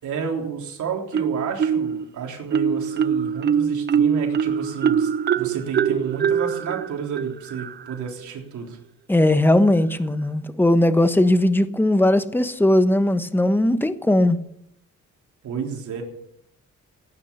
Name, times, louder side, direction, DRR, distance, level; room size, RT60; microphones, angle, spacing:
voice 1, 0.0-8.8 15.4-16.0, right 6 dB, 75° right, 3.6 m, -31 dB
Marimba xylophone, 1.1-2.0 2.5-8.0, right 7 dB, 35° right, 0.5 m, -23 dB
voice 2, 9.1-14.4, left 1 dB, 5° left, 1.1 m, -18 dB
16.0 x 9.7 x 7.0 m
cardioid pair, 100°, 30 cm